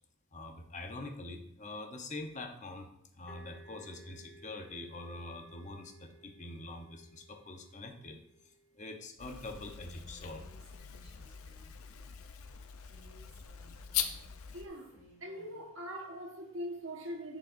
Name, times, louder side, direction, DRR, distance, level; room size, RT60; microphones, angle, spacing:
voice 1, 0.3-2.9 3.1-8.2 8.7-10.5, left 2 dB, 35° left, 0.9 m, -44 dB
sound 1, 3.3-10.8, right 2 dB, 5° left, 0.9 m, -60 dB
sound 2, 9.2-14.7, left 9 dB, 75° left, 0.7 m, -41 dB
Female speech woman speaking, 9.8-11.8 12.8-14.2 14.6-15.6, left 1 dB, 10° right, 3.1 m, -61 dB
voice 2, 14.5-17.4, equal, 60° right, 1.5 m, -42 dB
10.5 x 6.4 x 2.6 m
head